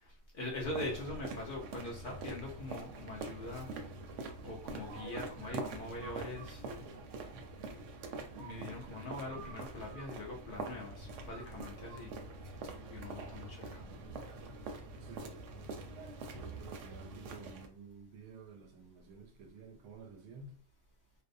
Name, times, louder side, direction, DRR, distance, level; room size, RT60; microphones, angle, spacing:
voice 1, 0.0-3.7 4.4-6.8 8.4-12.1 12.9-13.9, left 2 dB, 55° left, 0.6 m, -43 dB
sound 1, 0.6-17.7, right 3 dB, 70° right, 0.8 m, -45 dB
voice 2, 13.6-14.2 15.0-15.6 16.3-20.6, right 4 dB, 90° right, 1.1 m, -53 dB
2.6 x 2.0 x 2.5 m
omnidirectional pair, 1.4 m